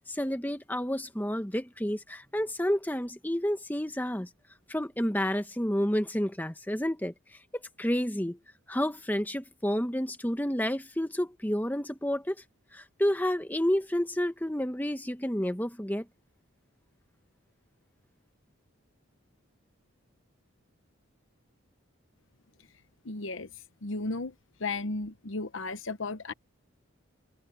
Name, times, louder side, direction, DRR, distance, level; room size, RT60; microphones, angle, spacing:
voice 1, 0.1-4.3 4.7-7.1 7.5-8.4 8.7-12.3 12.7-16.0, equal, 10° left, 1.1 m, -30 dB
voice 2, 23.0-23.5 23.8-24.3 24.6-26.3, left 3 dB, 65° left, 0.9 m, -34 dB
head